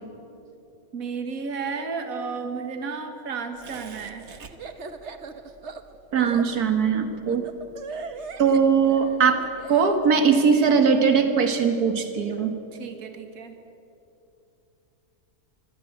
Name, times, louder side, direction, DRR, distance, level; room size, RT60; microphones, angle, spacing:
voice 1, 0.9-4.3 12.8-13.5, right 5 dB, 65° right, 7 dB, 2.0 m, -32 dB
Laughter, 3.6-10.0, right 4 dB, 50° right, 1.4 m, -39 dB
voice 2, 6.1-7.5 8.4-12.6, right 6 dB, 85° right, 7 dB, 2.1 m, -20 dB
24.0 x 16.5 x 9.8 m, 2.8 s
omnidirectional pair, 1.6 m